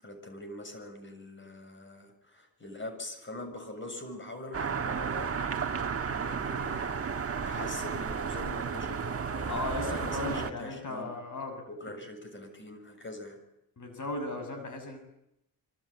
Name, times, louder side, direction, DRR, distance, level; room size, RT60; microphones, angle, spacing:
voice 1, 0.0-5.3 6.2-7.0 7.4-11.1 11.7-13.4, left 1 dB, 30° left, 7 dB, 7.0 m, -43 dB
sound 1, 4.5-10.5, right 6 dB, 40° right, 1.4 m, -33 dB
voice 2, 9.5-11.6 13.8-15.0, left 2 dB, 50° left, 6 dB, 6.8 m, -36 dB
26.0 x 25.5 x 8.8 m, 0.82 s
wide cardioid pair, 130°, 37 cm